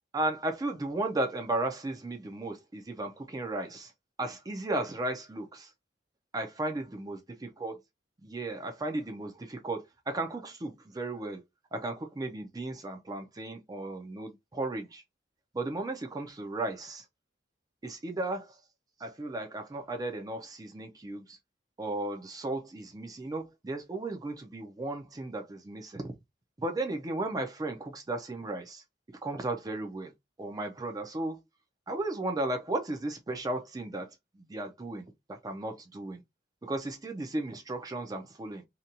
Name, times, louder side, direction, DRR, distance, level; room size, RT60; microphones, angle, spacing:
voice 1, 0.1-3.9 4.2-5.7 6.3-7.8 8.2-11.4 11.7-15.0 15.5-17.1 17.8-18.6 19.0-21.4 21.8-26.1 26.6-28.8 29.2-30.1 30.4-31.4 31.9-36.2 36.6-38.6, right 2 dB, 20° right, 0.4 m, -35 dB
2.8 x 2.2 x 2.5 m
head